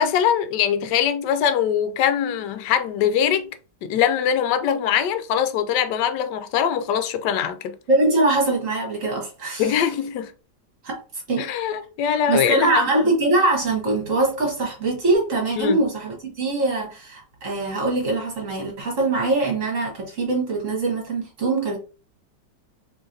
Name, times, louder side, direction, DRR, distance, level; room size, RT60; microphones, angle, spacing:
voice 1, 0.0-3.5 3.8-7.8 9.6-10.3 11.4-12.9 15.6-15.8, left 8 dB, 75° left, 1.2 m, -22 dB
voice 2, 7.9-9.7 10.8-11.0 11.3-11.5 12.0-21.8, right 2 dB, 50° right, 1.5 m, -23 dB
3.9 x 3.1 x 2.6 m
omnidirectional pair, 1.9 m